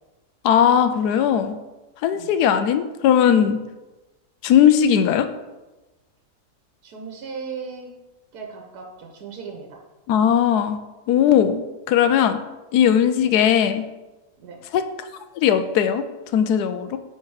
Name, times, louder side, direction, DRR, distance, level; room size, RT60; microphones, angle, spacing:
voice 1, 0.4-1.6 2.0-3.6 4.4-5.3 10.1-10.8 11.1-12.4 12.7-13.8 14.7-14.8 15.4-16.0 16.3-17.0, left 9 dB, 90° left, 10 dB, 1.1 m, -18 dB
voice 2, 6.8-7.9 8.3-9.8 13.2-13.3 14.4-14.6, right 5 dB, 85° right, 2 dB, 1.5 m, -37 dB
8.8 x 3.5 x 4.8 m, 1.1 s
omnidirectional pair, 1.6 m